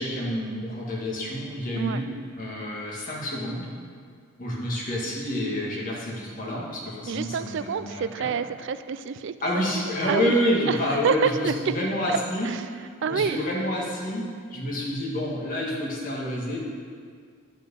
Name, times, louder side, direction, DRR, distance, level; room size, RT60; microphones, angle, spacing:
voice 1, 0.0-2.1 2.4-3.7 4.4-8.3 9.4-16.6, equal, 40° left, -4 dB, 1.9 m, -28 dB
voice 2, 7.1-9.7 10.1-10.4 10.7-11.8 12.1-12.2 12.4-12.6 13.0-13.4, right 6 dB, 55° right, 13 dB, 0.3 m, -28 dB
10.0 x 4.5 x 6.9 m, 2.1 s
head